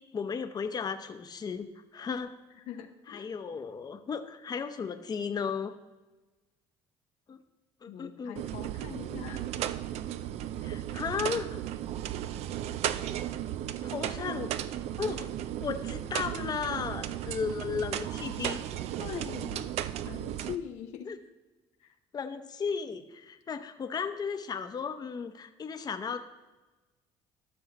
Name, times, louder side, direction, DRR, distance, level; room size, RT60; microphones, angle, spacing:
voice 1, 0.1-2.4 3.1-5.7 7.3-7.4 7.8-8.4 10.6-11.5 13.8-14.5 15.0-15.3 15.6-18.6 21.0-21.2 22.1-26.2, left 6 dB, 35° left, 8 dB, 0.7 m, -35 dB
voice 2, 2.7-3.3 7.9-9.5 19.0-19.8 20.0-21.1 21.8-21.9, left 9 dB, 80° left, 6 dB, 0.7 m, -42 dB
sound 1, 8.4-20.6, right 11 dB, 70° right, 0.4 m, -35 dB
13.5 x 6.3 x 3.0 m, 1.2 s
cardioid pair, 85°, 11 cm